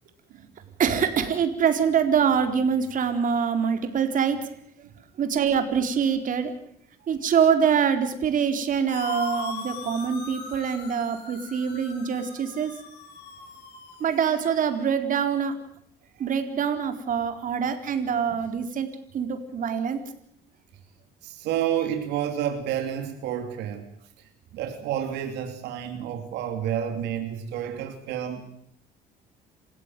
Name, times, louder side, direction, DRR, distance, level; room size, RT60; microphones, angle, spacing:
voice 1, 0.8-4.4 5.2-6.5 7.1-12.7 14.0-15.5 16.2-18.9 19.1-20.0, right 7 dB, 50° right, 7 dB, 4.2 m, -24 dB
sound 1, 8.9-14.7, left 3 dB, 90° left, 7.9 m, -40 dB
voice 2, 21.2-23.9 24.2-28.4, right 10 dB, 85° right, 6 dB, 3.0 m, -30 dB
28.0 x 16.0 x 9.2 m, 0.67 s
cardioid pair, 110°, 17 cm